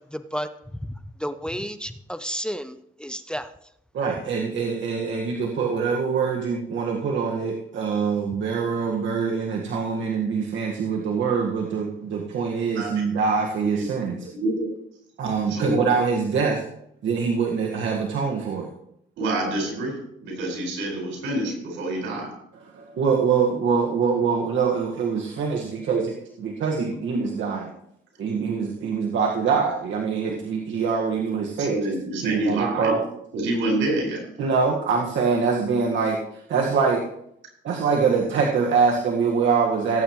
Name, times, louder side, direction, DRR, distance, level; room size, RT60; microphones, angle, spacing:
voice 1, 1.2-3.5, equal, 5° left, 10 dB, 0.7 m, -31 dB
voice 2, 3.9-14.2 15.2-16.6 17.0-18.7 22.7-27.7 28.2-31.8 32.2-33.0 34.4-36.2 36.5-37.0 37.6-40.0, right 5 dB, 70° right, 0 dB, 1.7 m, -24 dB
voice 3, 15.5-15.9 19.2-20.0 20.2-22.3 31.6-33.0 33.3-34.2, right 1 dB, 90° right, 0 dB, 5.2 m, -27 dB
18.5 x 8.9 x 3.1 m, 0.74 s
cardioid pair, 90°, 20 cm